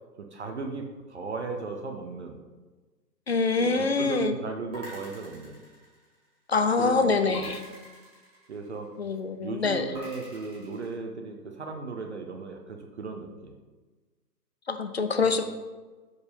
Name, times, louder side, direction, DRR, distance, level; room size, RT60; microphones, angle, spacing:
voice 1, 0.2-2.4 3.6-5.6 6.8-7.5 8.5-8.9 9.4-13.5 15.2-15.3, right 4 dB, 45° right, 4 dB, 0.7 m, -36 dB
voice 2, 3.3-4.4 6.5-7.6 9.0-9.9 14.7-15.4, left 4 dB, 45° left, 8 dB, 0.4 m, -25 dB
sound 1, 4.7-6.5 7.3-9.0 9.9-10.9, equal, 10° right, 2.0 m, -45 dB
4.8 x 4.7 x 5.3 m, 1.3 s
figure-of-eight pair, 145°, 49 cm